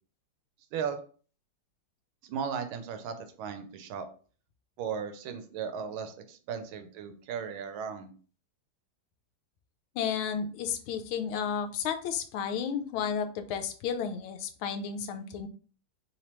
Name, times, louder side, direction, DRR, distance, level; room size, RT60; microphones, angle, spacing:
voice 1, 2.2-4.1 4.8-8.1, right 7 dB, 85° right, 8 dB, 1.4 m, -36 dB
voice 2, 9.9-15.5, left 7 dB, 85° left, 8 dB, 1.4 m, -32 dB
3.5 x 2.9 x 3.0 m, 0.41 s
omnidirectional pair, 2.2 m